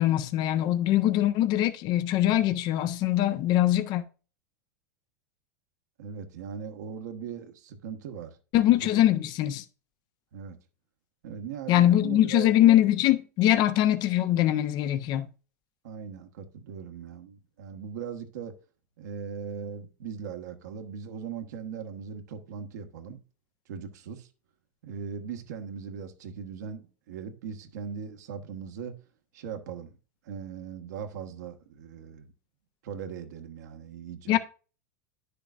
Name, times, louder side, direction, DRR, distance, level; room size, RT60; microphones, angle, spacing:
voice 1, 0.0-4.0 8.5-9.6 11.7-15.3 34.3-34.4, left 13 dB, 50° left, 0.9 m, -22 dB
voice 2, 6.0-8.4 8.7-9.0 10.3-10.6 11.2-12.5 15.8-18.6 19.0-23.2 23.7-24.3 24.8-29.0 29.3-30.0 30.2-32.3 32.8-34.4, right 7 dB, 70° right, 1.5 m, -39 dB
10.5 x 6.8 x 2.5 m
hypercardioid pair, 100°, 10 cm